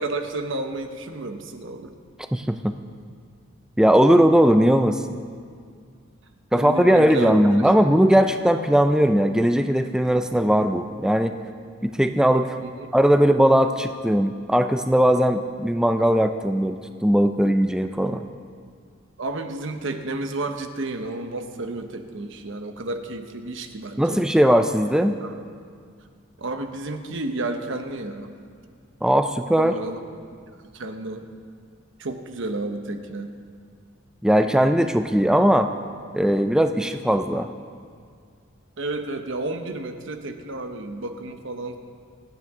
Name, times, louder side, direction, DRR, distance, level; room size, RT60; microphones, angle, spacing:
voice 1, 0.0-1.9 6.5-7.4 12.6-12.9 19.2-24.2 25.2-25.4 26.4-28.3 29.6-30.0 30.3-30.4 30.7-31.3 32.0-33.3 38.8-41.8, right 2 dB, 65° right, 6 dB, 1.0 m, -31 dB
voice 2, 2.3-2.7 3.8-5.0 6.5-11.4 11.8-12.5 12.9-18.3 24.0-25.1 29.0-29.7 34.2-35.7 36.1-37.5, equal, 5° right, 7 dB, 0.4 m, -19 dB
26.0 x 9.2 x 3.7 m, 2.1 s
head